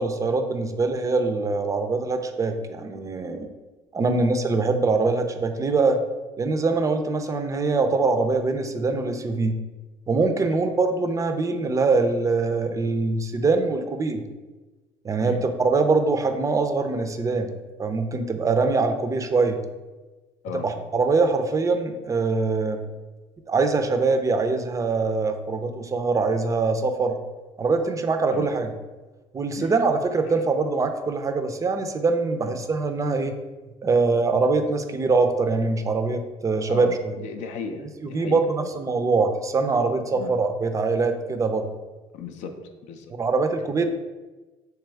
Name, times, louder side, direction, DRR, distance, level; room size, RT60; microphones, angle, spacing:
voice 1, 0.0-3.5 3.9-6.0 6.4-9.6 10.1-14.2 15.0-17.5 17.8-19.6 20.6-22.8 23.5-27.2 27.6-28.7 29.3-33.3 33.8-37.1 38.0-41.7 43.2-43.9, right 3 dB, 25° right, 7 dB, 0.4 m, -23 dB
voice 2, 36.6-38.7 40.1-40.3 42.1-42.5 42.8-43.1, left 5 dB, 75° left, 7 dB, 0.4 m, -36 dB
3.4 x 2.9 x 3.3 m, 1.2 s
supercardioid pair, 90°, 12 cm